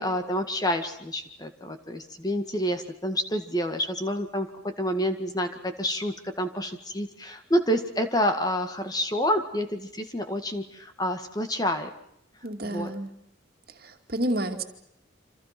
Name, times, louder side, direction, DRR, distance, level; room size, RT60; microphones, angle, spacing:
voice 1, 0.0-11.9 12.6-12.9, equal, 20° left, 7 dB, 1.9 m, -28 dB
voice 2, 12.4-13.1 13.8-14.6, right 1 dB, 50° right, 5 dB, 2.6 m, -30 dB
28.5 x 26.5 x 6.0 m, 0.75 s
head